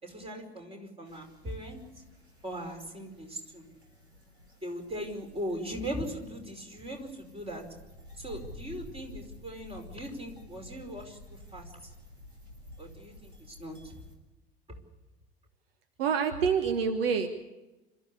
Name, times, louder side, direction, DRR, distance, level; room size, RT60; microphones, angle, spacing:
voice 1, 0.0-1.8 2.4-3.6 4.6-7.6 8.2-11.9 12.8-13.9 14.7-14.8, equal, 20° right, 3 dB, 5.1 m, -39 dB
sound 1, 1.1-14.2, left 1 dB, 85° right, 4.2 m, -51 dB
voice 2, 16.0-17.3, right 6 dB, 65° right, 8 dB, 1.4 m, -27 dB
27.0 x 14.0 x 8.4 m, 1.1 s
figure-of-eight pair, 75°, 32 cm